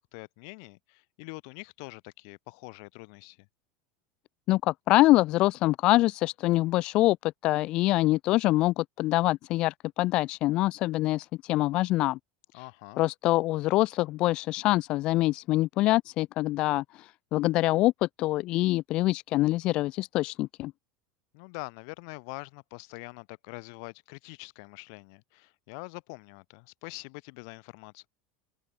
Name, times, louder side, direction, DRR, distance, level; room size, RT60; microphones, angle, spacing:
voice 1, 0.0-3.5 12.5-13.0 21.3-28.1, left 37 dB, 55° left, 4.7 m, -44 dB
voice 2, 4.5-12.2 12.5-12.6 13.0-20.7, left 17 dB, 40° left, 2.1 m, -25 dB
open air
supercardioid pair, 170°, 2 cm